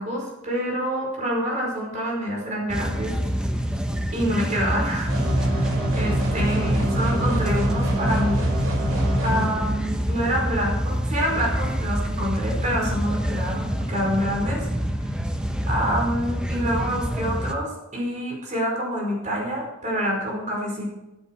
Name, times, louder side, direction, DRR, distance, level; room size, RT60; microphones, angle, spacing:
voice 1, 0.0-3.2 4.1-8.5 9.2-14.7 15.0-15.1 15.7-20.9, equal, 35° right, -2 dB, 5.0 m, -27 dB
sound 1, 2.7-17.5, equal, 5° right, 1.0 m, -27 dB
sound 2, 5.1-9.5, right 1 dB, 80° right, 5.9 m, -25 dB
13.0 x 13.0 x 4.8 m, 0.97 s
head